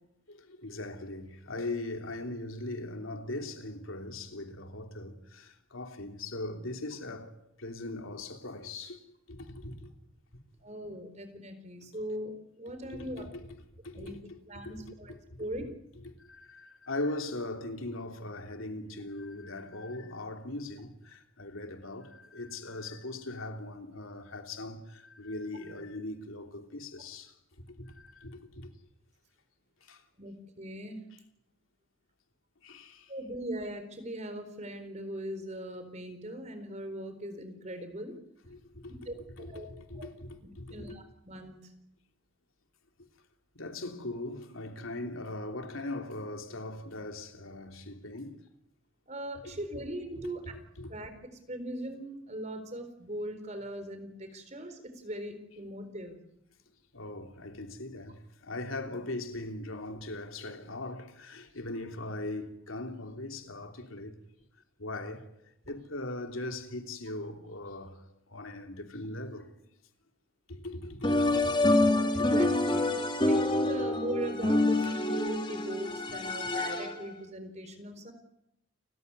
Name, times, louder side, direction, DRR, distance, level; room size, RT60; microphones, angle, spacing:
voice 1, 0.3-9.0 9.3-9.9 12.9-13.5 13.8-14.8 15.1-15.2 15.6-15.7 16.0-27.3 27.7-28.7 29.8-30.0 32.6-33.1 38.5-39.1 39.4-41.0 43.5-48.4 50.2-50.9 56.9-64.2 64.8-65.2 65.7-68.0 68.3-69.5 70.5-72.3 72.9-73.2 74.8-74.9 76.2-76.3, left 2 dB, 85° left, 3.2 m, -40 dB
voice 2, 10.6-13.3 13.9-14.2 14.5-15.6 30.2-31.0 33.1-38.1 39.1-39.7 39.9-40.1 40.7-41.6 49.1-50.6 50.9-51.1 51.5-56.2 71.7-73.0 73.3-78.1, right 1 dB, 35° right, 4.2 m, -40 dB
sound 1, 71.0-77.1, left 2 dB, 25° left, 2.7 m, -27 dB
29.5 x 15.0 x 9.8 m
head